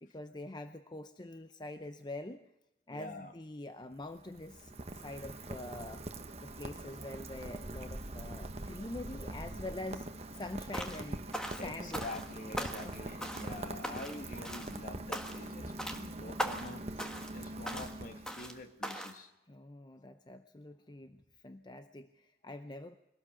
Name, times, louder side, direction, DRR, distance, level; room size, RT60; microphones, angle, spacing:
voice 1, 0.0-2.4 2.9-6.0 6.4-12.1 12.6-12.9 19.5-23.0, left 2 dB, 25° left, 9 dB, 0.6 m, -45 dB
voice 2, 2.9-3.3 11.6-19.3, left 2 dB, 45° left, 8 dB, 1.5 m, -46 dB
Rain, 3.8-18.6, right 2 dB, 35° right, 1.2 m, -43 dB
sound 1, 10.7-11.1 11.3-12.3 12.6-12.9 13.2-13.6 13.8-14.2 14.4-14.8 15.1-15.5 15.8-16.0 16.4-16.7 17.0-17.3 17.7-17.9 18.3-18.5 18.8-19.2, equal, 5° left, 1.5 m, -39 dB
23.0 x 17.5 x 7.1 m, 0.89 s
head